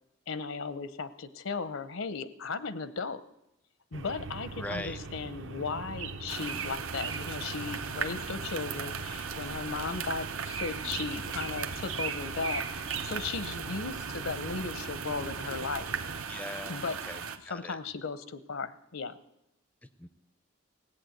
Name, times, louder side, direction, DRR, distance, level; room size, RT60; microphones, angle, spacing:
voice 1, 0.3-3.2 3.9-15.8 16.7-17.0 17.4-19.2, left 4 dB, 75° left, 14 dB, 0.7 m, -36 dB
sound 1, 3.9-16.2, right 4 dB, 65° right, 0.8 m, -40 dB
voice 2, 4.5-5.0 16.3-17.8 20.0-20.1, left 1 dB, 5° left, 12 dB, 0.4 m, -41 dB
sound 2, 6.3-17.4, right 6 dB, 90° right, 1.0 m, -38 dB
17.0 x 8.6 x 7.9 m, 0.86 s
head